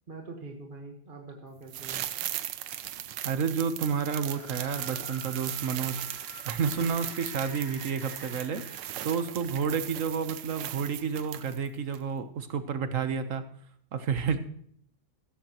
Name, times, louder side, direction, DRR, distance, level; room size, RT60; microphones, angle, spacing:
voice 1, 0.1-2.1, right 3 dB, 30° right, 2 dB, 1.5 m, -44 dB
sound 1, 1.7-11.7 11.9-12.0, right 12 dB, 70° right, 1.3 m, -38 dB
voice 2, 3.2-6.0 6.5-13.4 13.9-14.4, right 6 dB, 50° right, 10 dB, 1.2 m, -30 dB
sound 2, 4.2-9.4, left 2 dB, 20° left, 3.3 m, -49 dB
16.0 x 14.0 x 3.0 m, 0.64 s
omnidirectional pair, 2.1 m